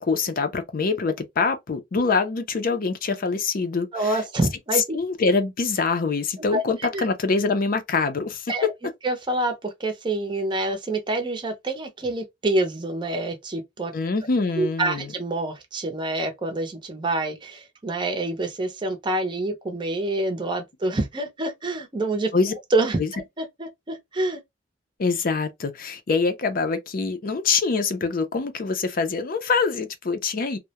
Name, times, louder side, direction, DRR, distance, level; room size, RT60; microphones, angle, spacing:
voice 1, 0.0-4.2 4.9-8.7 13.9-15.1 22.3-22.5 23.0-23.1 25.0-30.6, left 4 dB, 50° left, 0.5 m, -24 dB
voice 2, 3.9-5.0 6.5-6.6 6.9-7.1 8.5-8.7 9.0-13.9 14.6-22.3 22.7-24.4, right 2 dB, 25° right, 0.6 m, -27 dB
2.2 x 2.1 x 2.8 m
head